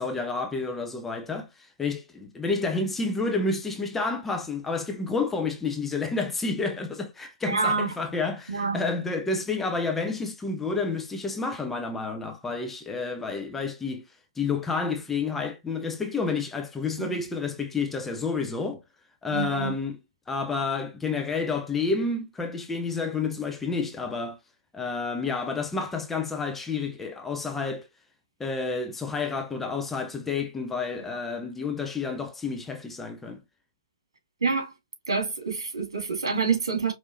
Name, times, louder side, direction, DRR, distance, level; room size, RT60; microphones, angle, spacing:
voice 1, 0.0-14.0 14.4-18.8 19.2-20.0 20.3-24.4 24.7-27.9 28.4-33.4, left 4 dB, 5° left, 0.4 m, -30 dB
voice 2, 7.5-7.9 8.5-8.8 17.0-17.2 19.3-19.7 34.4-34.7 35.1-36.9, right 4 dB, 60° right, 2.0 m, -27 dB
5.1 x 3.0 x 2.6 m
figure-of-eight pair, 130°, 3 cm